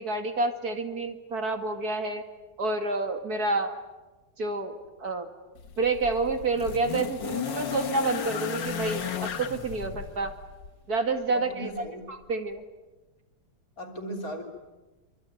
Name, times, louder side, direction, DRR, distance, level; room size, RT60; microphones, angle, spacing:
voice 1, 0.0-2.2 2.6-3.8 4.4-5.3 5.8-10.3 10.9-11.7 12.1-12.6, right 3 dB, 55° right, 6 dB, 2.5 m, -29 dB
sound 1, 5.6-10.8 11.8-11.9, left 8 dB, 70° left, 2.1 m, -35 dB
voice 2, 11.3-12.0 13.8-14.4, right 1 dB, 50° left, 5 dB, 4.1 m, -37 dB
25.5 x 25.0 x 9.2 m, 1.2 s
omnidirectional pair, 2.0 m